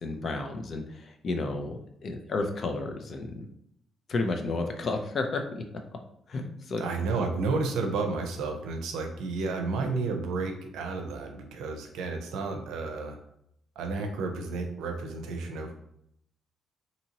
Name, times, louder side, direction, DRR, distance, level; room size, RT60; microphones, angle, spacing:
voice 1, 0.0-3.5 4.1-5.6 6.3-6.8, left 3 dB, 50° left, 5 dB, 0.4 m, -32 dB
voice 2, 6.8-13.2 13.8-15.7, right 3 dB, 90° right, 4 dB, 0.5 m, -31 dB
2.7 x 2.7 x 2.8 m, 0.73 s
cardioid pair, 90°, 0 cm